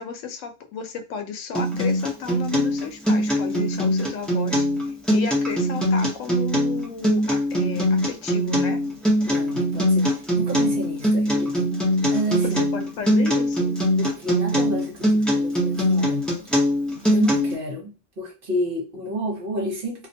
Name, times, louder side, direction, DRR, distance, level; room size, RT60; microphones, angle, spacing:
voice 1, 0.0-4.6 5.1-8.8 12.4-13.8, left 6 dB, 85° left, 0.9 m, -32 dB
Acoustic guitar, 1.5-17.5, equal, ahead, 0.4 m, -22 dB
voice 2, 9.3-10.1 10.3-11.7 12.1-12.6 14.0-16.3 17.1-20.1, right 1 dB, 50° right, 0.9 m, -30 dB
2.4 x 2.1 x 2.6 m
omnidirectional pair, 1.3 m